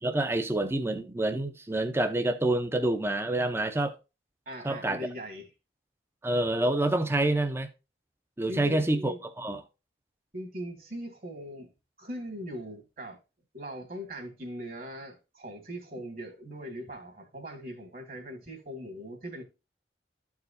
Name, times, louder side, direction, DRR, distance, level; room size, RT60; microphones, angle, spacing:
voice 1, 0.0-4.0 4.6-5.0 6.2-7.7 8.4-9.6, right 1 dB, 15° right, 0.6 m, -27 dB
voice 2, 4.5-5.5 8.5-9.2 10.3-11.7 12.0-13.2 13.5-19.4, equal, 50° right, 2.0 m, -40 dB
12.5 x 4.8 x 2.6 m
head